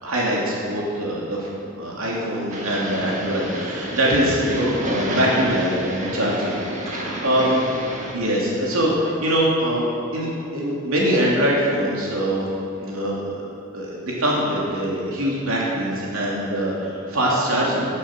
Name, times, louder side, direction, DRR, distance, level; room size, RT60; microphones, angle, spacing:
voice 1, 0.0-6.6 6.9-7.5 8.1-9.9 10.1-12.5 12.8-13.4 13.7-17.9, equal, 80° right, -4 dB, 2.9 m, -23 dB
sound 1, 2.5-8.1, right 1 dB, 35° right, 2.1 m, -30 dB
15.5 x 11.5 x 6.1 m, 2.6 s
head